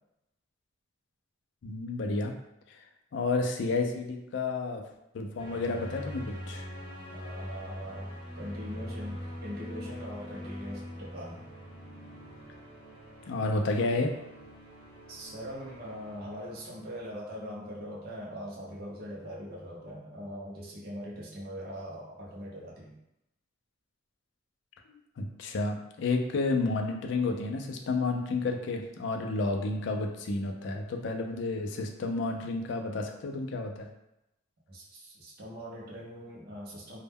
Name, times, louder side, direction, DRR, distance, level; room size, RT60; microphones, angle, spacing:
voice 1, 1.6-2.3 3.1-4.8 5.1-6.6 13.3-14.1 24.9-33.9, left 3 dB, 65° left, 3 dB, 0.3 m, -31 dB
sound 1, 5.4-17.0, equal, 30° left, 0.6 m, -43 dB
voice 2, 7.1-11.5 15.1-22.9 34.7-37.0, equal, 50° right, -4 dB, 0.6 m, -42 dB
2.1 x 2.1 x 3.4 m, 0.86 s
head